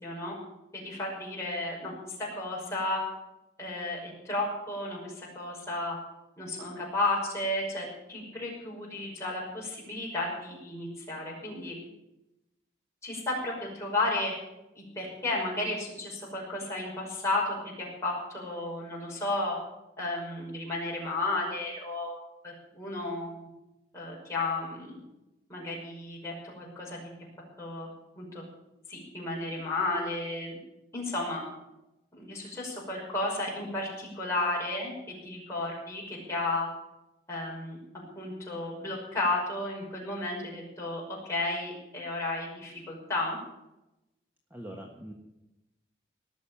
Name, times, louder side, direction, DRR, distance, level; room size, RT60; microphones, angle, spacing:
voice 1, 0.0-0.4 0.7-3.0 3.6-6.0 6.4-11.8 13.0-14.3 14.7-19.6 20.0-23.5 23.9-25.0 25.5-27.1 27.6-27.9 28.2-28.4 28.9-30.6 30.9-31.4 32.1-34.9 35.2-36.7 37.3-37.8 38.2-43.4, left 2 dB, 15° left, -4 dB, 5.6 m, -33 dB
voice 2, 44.5-45.1, right 1 dB, 10° right, 0 dB, 1.4 m, -42 dB
19.0 x 6.6 x 8.8 m, 0.93 s
head